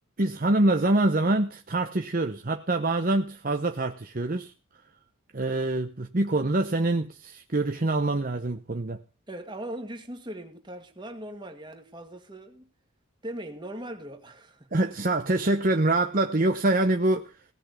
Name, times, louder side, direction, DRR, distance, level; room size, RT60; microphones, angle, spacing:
voice 1, 0.2-4.5 5.3-9.0 14.7-17.4, right 2 dB, 40° right, 0.9 m, -25 dB
voice 2, 9.3-12.7 13.2-14.7, right 1 dB, 20° right, 2.1 m, -39 dB
17.5 x 5.9 x 8.2 m
head